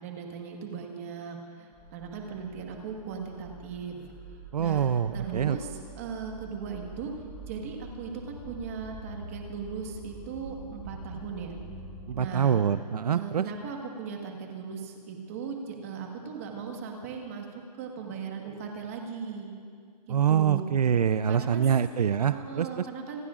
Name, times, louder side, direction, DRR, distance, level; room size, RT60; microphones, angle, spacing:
voice 1, 0.0-4.1 4.6-7.1 7.5-11.6 12.1-12.6 13.1-19.5 20.1-20.7 21.3-21.6 22.3-23.2, right 6 dB, 20° right, 2 dB, 1.5 m, -38 dB
sound 1, 1.7-12.2, right 2 dB, 5° left, 1.3 m, -45 dB
voice 2, 4.5-5.6 12.1-13.5 20.1-22.9, right 8 dB, 65° right, 12 dB, 0.5 m, -25 dB
27.5 x 19.5 x 2.5 m, 2.1 s
hypercardioid pair, 175°, 21 cm